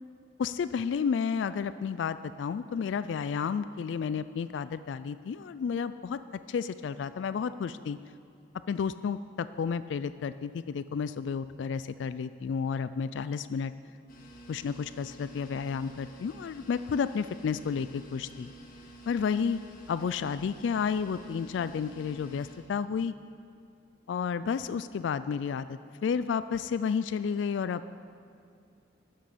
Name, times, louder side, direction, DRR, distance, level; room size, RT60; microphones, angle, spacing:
voice 1, 0.4-6.2 6.5-8.0 8.7-13.7 14.5-18.5 19.1-19.6 19.9-23.1 24.1-28.0, left 6 dB, 80° left, 14 dB, 0.3 m, -31 dB
sound 1, 14.1-22.6, right 2 dB, 50° left, 1.6 m, -50 dB
11.5 x 10.5 x 6.8 m, 2.5 s
head